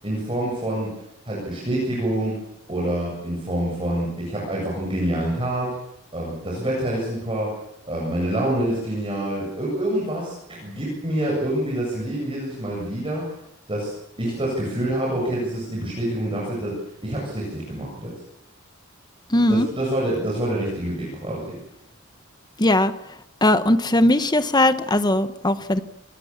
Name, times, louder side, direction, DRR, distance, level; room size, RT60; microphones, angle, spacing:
voice 1, 0.0-1.0 1.2-2.4 2.7-5.8 6.1-7.6 7.9-13.3 13.7-18.1 19.5-21.5, right 1 dB, 25° right, -3 dB, 7.7 m, -26 dB
voice 2, 19.3-19.7 22.6-22.9 23.4-25.8, left 1 dB, 20° left, 10 dB, 1.3 m, -19 dB
27.5 x 19.5 x 7.5 m, 0.80 s
head